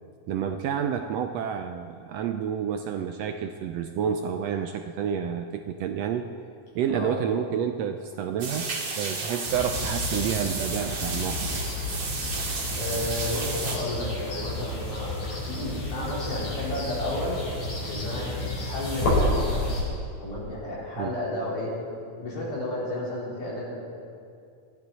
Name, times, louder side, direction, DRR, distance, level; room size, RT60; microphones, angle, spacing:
voice 1, 0.3-6.3 6.7-11.6 21.0-21.1, right 8 dB, 80° right, 6 dB, 1.5 m, -29 dB
sound 1, 8.4-13.8, right 4 dB, 55° right, 2.9 m, -32 dB
sound 2, 9.4-19.8, left 1 dB, 70° left, 5.7 m, -31 dB
voice 2, 12.7-15.2 15.5-17.4 17.9-19.8 20.2-21.7 22.2-23.8, left 1 dB, 85° left, -6 dB, 5.5 m, -32 dB
19.0 x 14.0 x 4.1 m, 2.4 s
omnidirectional pair, 3.4 m